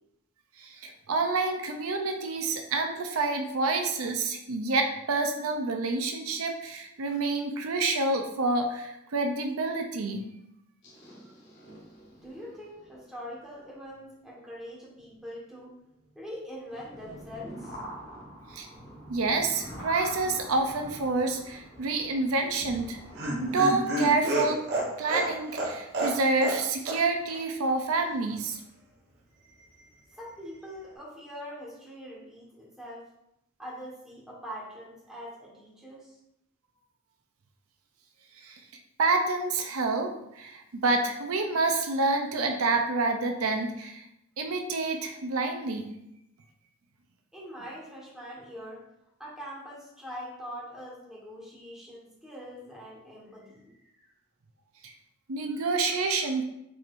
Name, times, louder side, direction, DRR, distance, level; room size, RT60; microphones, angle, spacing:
voice 1, 0.8-10.2 18.5-18.7 19.1-23.0 23.4-24.6 25.0-28.6 38.4-38.5 39.0-44.0 44.4-45.9 54.8-54.9 55.3-56.4, right 3 dB, 85° right, 4 dB, 0.6 m, -28 dB
sound 1, 10.8-13.6 13.9-14.1 15.0-15.2 16.0-16.1 16.3-16.4 16.7-23.8, equal, 55° left, 1.4 m, -46 dB
voice 2, 12.1-15.7 16.1-17.8 30.1-33.1 33.6-36.2 47.3-48.8 49.2-54.1, equal, ahead, -6 dB, 1.4 m, -43 dB
Laughter, 22.6-26.6 26.9-27.0 27.3-27.4, right 1 dB, 50° right, 1.1 m, -30 dB
4.8 x 4.4 x 2.6 m, 0.82 s
head